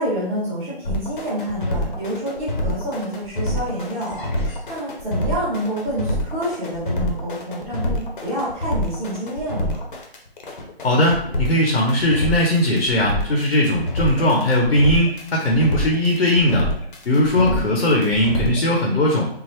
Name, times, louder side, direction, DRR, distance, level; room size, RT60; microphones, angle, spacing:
voice 1, 0.0-9.8 17.3-17.7, equal, 5° right, -10 dB, 0.8 m, -28 dB
sound 1, 0.8-18.6, left 1 dB, 50° left, 0.8 m, -26 dB
voice 2, 10.8-16.7 17.1-19.3, left 1 dB, 85° left, -1 dB, 1.0 m, -19 dB
3.8 x 2.0 x 3.0 m, 0.71 s
figure-of-eight pair, 150°, 32 cm